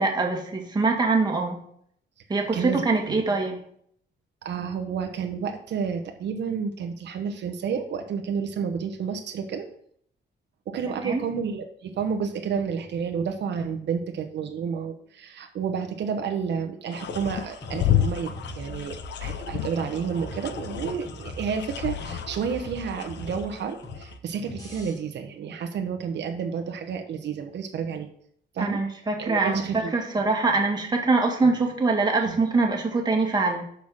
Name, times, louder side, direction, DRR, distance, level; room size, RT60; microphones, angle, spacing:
voice 1, 0.0-1.6 2.3-3.6 11.0-11.2 28.6-33.6, right 3 dB, 20° right, 1 dB, 1.7 m, -24 dB
voice 2, 2.5-3.2 4.4-9.7 10.7-28.1 28.5-28.8 29.2-29.9 32.2-32.3, right 6 dB, 70° right, 5 dB, 0.9 m, -30 dB
sound 1, 16.9-24.2, left 11 dB, 70° left, 0.8 m, -31 dB
sound 2, 17.1-24.9, equal, 20° left, 3.5 m, -41 dB
6.4 x 5.6 x 6.2 m, 0.66 s
cardioid pair, 120°, 19 cm